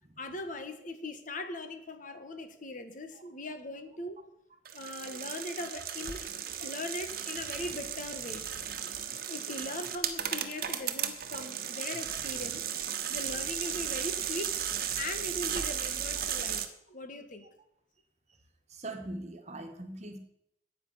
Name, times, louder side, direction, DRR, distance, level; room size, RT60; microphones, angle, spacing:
voice 1, 0.2-4.2 4.7-6.3 6.6-8.4 9.3-12.6 13.1-14.5 15.0-17.5, left 2 dB, 45° left, 8 dB, 1.5 m, -40 dB
sound 1, 4.7-16.7, right 9 dB, 55° right, 1.3 m, -35 dB
voice 2, 18.7-20.2, right 2 dB, 40° right, 6 dB, 1.6 m, -41 dB
10.0 x 9.1 x 8.0 m, 0.75 s
head